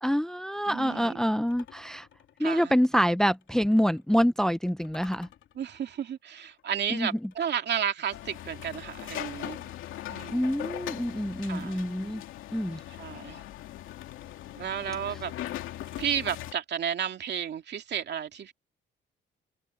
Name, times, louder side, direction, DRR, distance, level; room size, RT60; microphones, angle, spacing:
voice 1, 0.0-2.1 2.4-5.3 6.9-7.1 10.3-12.2 12.5-12.8, equal, 5° left, 0.7 m, -26 dB
voice 2, 0.7-1.2 2.4-2.8 5.5-9.6 10.1-10.5 11.4-11.8 13.0-13.4 14.5-15.3 16.0-18.5, right 8 dB, 60° right, 2.4 m, -32 dB
sound 1, 1.5-4.1 4.8-7.8 9.3-11.8 13.7-16.2, left 10 dB, 70° left, 3.5 m, -57 dB
sound 2, 8.1-16.5, left 13 dB, 90° left, 2.6 m, -40 dB
cardioid pair, 90°, 20 cm